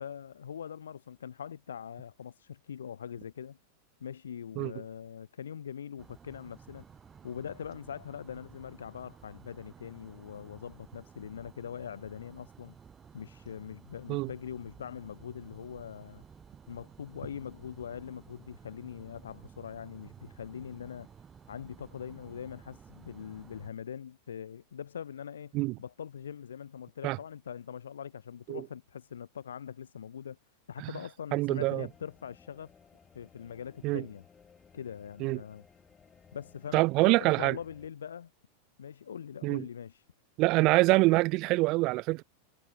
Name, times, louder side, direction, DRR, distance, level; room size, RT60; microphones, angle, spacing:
voice 1, 0.0-3.6 4.0-6.8 7.2-12.8 13.1-16.2 16.7-21.1 21.5-30.4 30.7-32.7 33.1-34.2 34.7-35.6 36.3-38.3 38.8-40.1, left 8 dB, 80° left, 0.9 m, -42 dB
sound 1, 6.0-23.7, right 6 dB, 25° right, 2.4 m, -54 dB
voice 2, 31.3-31.9 33.8-34.0 35.2-35.4 36.7-37.6 39.4-39.6 40.4-42.2, right 22 dB, 50° right, 0.4 m, -25 dB
sound 2, 31.8-37.9, left 6 dB, 20° left, 6.6 m, -60 dB
hypercardioid pair, 100°, 0 cm